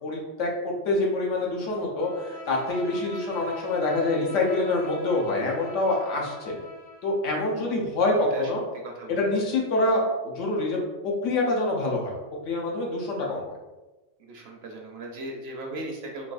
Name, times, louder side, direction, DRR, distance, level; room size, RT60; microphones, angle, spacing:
voice 1, 0.0-6.6 7.0-8.6 9.1-10.8 11.0-12.2 12.4-13.4, left 2 dB, 80° left, -1 dB, 1.1 m, -26 dB
Bowed string instrument, 2.0-7.2, left 1 dB, 55° left, 0.4 m, -43 dB
voice 2, 8.1-8.5 8.8-9.3 14.2-16.3, right 2 dB, 65° right, 1 dB, 0.7 m, -38 dB
3.8 x 2.4 x 2.4 m, 1.1 s
omnidirectional pair, 1.3 m